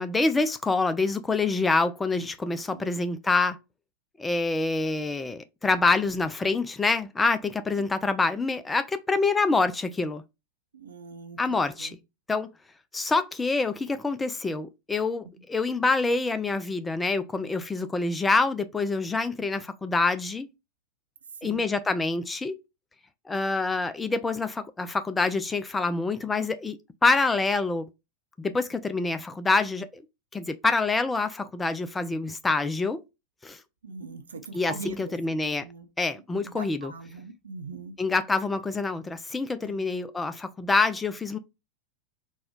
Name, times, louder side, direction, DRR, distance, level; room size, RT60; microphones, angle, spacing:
voice 1, 0.0-3.6 4.2-10.2 11.4-12.0 12.3-12.5 12.9-20.5 21.4-22.6 23.3-26.8 27.0-27.9 28.4-30.0 30.3-33.0 33.4-33.6 34.5-35.7 36.0-36.9 38.0-41.4, left 3 dB, 10° left, 0.4 m, -26 dB
voice 2, 2.5-2.9 7.8-7.9 10.7-12.0 21.4-21.6 33.8-35.1 35.6-35.9 36.4-38.0 39.6-39.8, right 4 dB, 70° right, 0.6 m, -41 dB
4.2 x 2.2 x 3.5 m
figure-of-eight pair, 90°, 0 cm